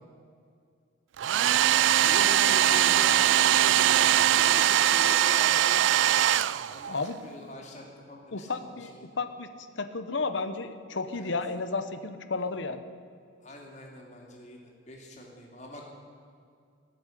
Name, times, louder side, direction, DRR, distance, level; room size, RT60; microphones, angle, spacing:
Domestic sounds home sounds, 1.2-7.0, right 11 dB, 70° right, 0.3 m, -22 dB
voice 1, 1.3-1.7 2.0-6.4 6.7-6.9 7.2-9.1 11.1-11.3 13.4-15.9, equal, 35° left, 0 dB, 2.7 m, -43 dB
voice 2, 6.9-7.2 8.3-9.5 9.8-12.8, left 3 dB, 70° left, 10 dB, 0.9 m, -32 dB
16.5 x 8.0 x 9.9 m, 2.3 s
head